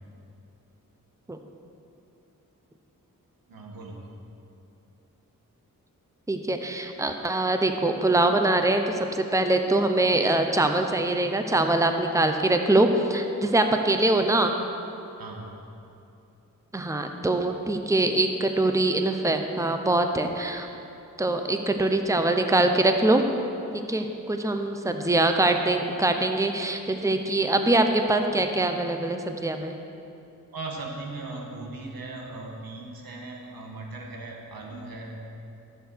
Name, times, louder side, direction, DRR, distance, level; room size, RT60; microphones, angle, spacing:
voice 1, 3.5-4.0 15.2-15.5 30.5-35.2, right 2 dB, 85° right, 0 dB, 1.7 m, -38 dB
voice 2, 6.3-14.5 16.7-20.7 21.2-23.2 23.9-29.7, right 2 dB, 10° right, 5 dB, 0.9 m, -23 dB
13.5 x 7.0 x 6.4 m, 2.8 s
cardioid pair, 60°, 34 cm